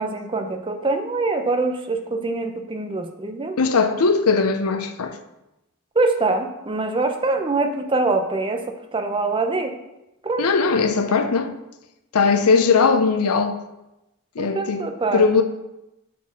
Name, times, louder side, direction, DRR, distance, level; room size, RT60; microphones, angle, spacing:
voice 1, 0.0-3.6 5.9-8.6 8.9-9.7 10.2-10.5 11.1-11.2 14.4-15.3, right 3 dB, 25° right, 0.6 m, -24 dB
voice 2, 3.6-5.2 10.4-11.6 12.1-13.6 14.4-14.9 15.1-15.4, left 4 dB, 90° left, 0.6 m, -19 dB
6.0 x 4.2 x 6.0 m
head